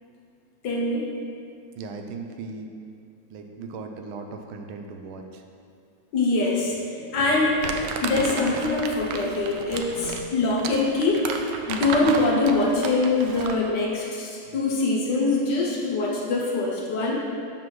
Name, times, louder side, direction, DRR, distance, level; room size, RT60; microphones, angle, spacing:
voice 1, 0.6-1.0 6.1-7.7 8.0-11.3 11.7-17.1, left 3 dB, 65° left, -3 dB, 1.4 m, -23 dB
voice 2, 1.8-2.7 3.3-5.4, right 4 dB, 90° right, 4 dB, 1.5 m, -37 dB
Crumpling crinkling, 7.6-13.7, right 5 dB, 75° right, 1.0 m, -33 dB
7.2 x 6.0 x 3.2 m, 2.4 s
omnidirectional pair, 2.2 m